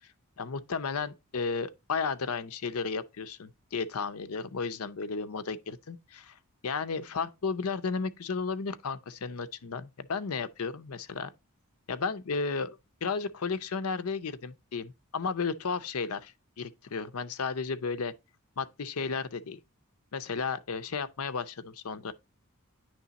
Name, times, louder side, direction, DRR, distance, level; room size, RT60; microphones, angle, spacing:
voice 1, 0.4-6.4 6.6-11.3 11.9-18.1 18.6-19.6 20.1-22.1, left 5 dB, 75° left, 0.6 m, -33 dB
9.6 x 3.3 x 4.0 m
head